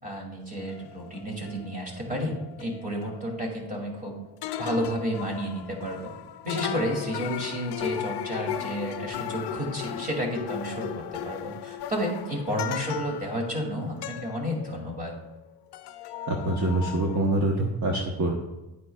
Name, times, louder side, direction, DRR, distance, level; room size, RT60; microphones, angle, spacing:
voice 1, 0.0-4.2 4.6-6.1 6.4-15.1, equal, 20° right, 0 dB, 2.5 m, -31 dB
sound 1, 0.6-4.1 4.4-15.5 15.7-17.2, left 10 dB, 70° left, 0.5 m, -37 dB
voice 2, 16.3-18.3, right 2 dB, 40° right, 0 dB, 1.1 m, -25 dB
10.5 x 9.1 x 2.3 m, 0.99 s
cardioid pair, 125°, 42 cm